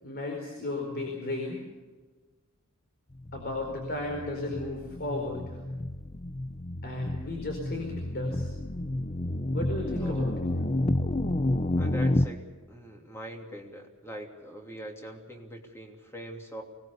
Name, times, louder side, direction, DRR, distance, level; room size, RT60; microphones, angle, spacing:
voice 1, 0.0-1.6 3.3-5.6 6.8-8.5 9.5-10.5, left 2 dB, 50° left, 2 dB, 4.5 m, -34 dB
sound 1, 3.2-12.3, left 1 dB, 30° left, 0.7 m, -30 dB
voice 2, 10.0-10.3 11.8-16.6, equal, 10° left, 2 dB, 3.0 m, -42 dB
24.5 x 19.0 x 7.0 m, 1.3 s
head